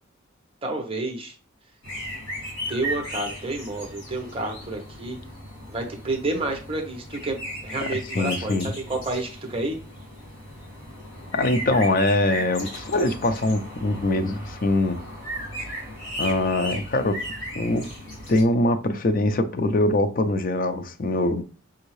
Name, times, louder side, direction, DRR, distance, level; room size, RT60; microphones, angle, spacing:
voice 1, 0.6-1.3 2.7-5.2 5.7-7.4 7.6-9.8, right 2 dB, 30° right, 0.9 m, -29 dB
sound 1, 1.8-18.4, equal, 65° left, 1.9 m, -36 dB
voice 2, 8.1-8.7 11.3-15.0 16.2-17.2 17.5-17.9 18.3-21.4, left 2 dB, 45° left, 0.5 m, -23 dB
5.7 x 2.6 x 3.1 m
head